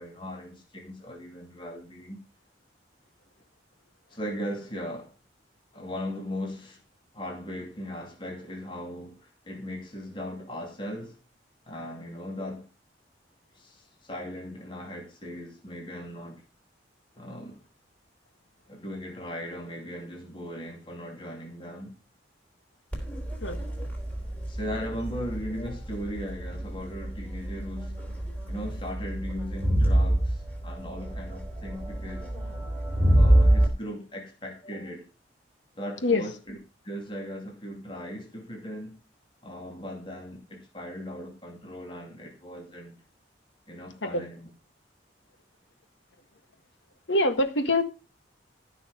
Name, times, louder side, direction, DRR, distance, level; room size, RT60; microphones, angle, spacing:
voice 1, 0.0-2.2 4.1-5.1 5.7-6.8 7.1-11.1 11.7-12.7 13.5-16.4 17.2-17.7 18.7-22.0 24.5-27.9 28.5-32.3 33.1-35.1 35.8-36.6 36.8-39.0 39.4-43.0 43.7-44.5, equal, 25° left, 2.7 m, -38 dB
Crowd, 22.9-33.7, right 1 dB, 10° left, 4.0 m, -27 dB
voice 2, 47.1-47.8, left 2 dB, 85° left, 1.8 m, -24 dB
14.5 x 6.2 x 5.1 m
head